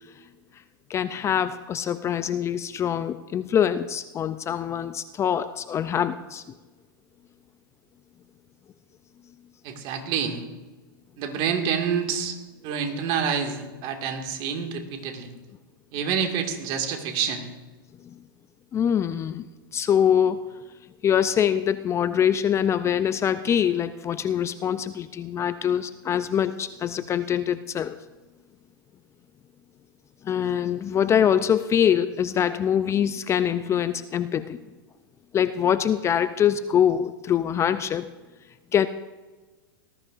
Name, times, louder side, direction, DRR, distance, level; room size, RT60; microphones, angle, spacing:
voice 1, 0.9-6.4 18.7-19.5 19.7-20.4 21.0-28.0 30.2-34.6 35.3-38.1 38.7-38.9, left 9 dB, 25° left, 12 dB, 0.4 m, -24 dB
voice 2, 9.6-10.4 11.2-12.4 12.6-15.3 15.9-17.5, right 7 dB, 45° right, 4 dB, 2.1 m, -27 dB
19.0 x 14.0 x 2.6 m, 1.2 s
hypercardioid pair, 120°, 12 cm